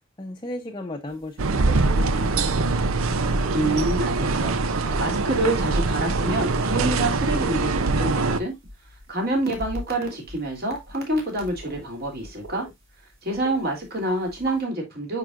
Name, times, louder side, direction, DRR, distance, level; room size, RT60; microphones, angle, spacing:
voice 1, 0.2-2.8, left 1 dB, 20° left, 0.6 m, -36 dB
sound 1, 1.1-1.2 1.8-2.3 3.2-3.9 4.2-4.6 4.9-12.7 13.1-13.7 14.1-14.6, equal, 70° right, 4.9 m, -40 dB
sound 2, 1.4-8.4, right 3 dB, 85° right, 0.7 m, -23 dB
voice 2, 3.5-8.5 9.1-12.7 13.2-15.2, right 1 dB, 50° right, 3.0 m, -27 dB
9.5 x 4.8 x 2.5 m
head